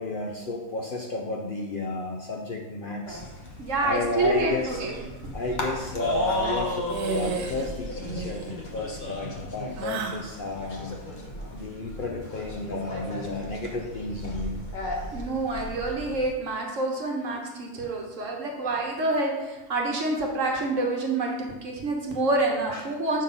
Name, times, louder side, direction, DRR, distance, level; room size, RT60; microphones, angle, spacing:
voice 1, 0.0-3.2 3.8-4.8 5.3-8.4 8.7-11.0 11.5-14.6 17.7-17.9 22.7-22.8, left 2 dB, 70° left, 1 dB, 0.5 m, -32 dB
sound 1, 3.0-16.3, left 1 dB, 35° left, 0.9 m, -35 dB
voice 2, 3.6-5.0 5.2-5.3 15.1-23.2, right 2 dB, 55° right, 0 dB, 1.3 m, -27 dB
sound 2, 6.9-7.7 8.0-8.5 9.8-10.3, right 4 dB, 80° right, 1.2 m, -32 dB
6.4 x 3.9 x 5.3 m, 1.1 s
omnidirectional pair, 1.7 m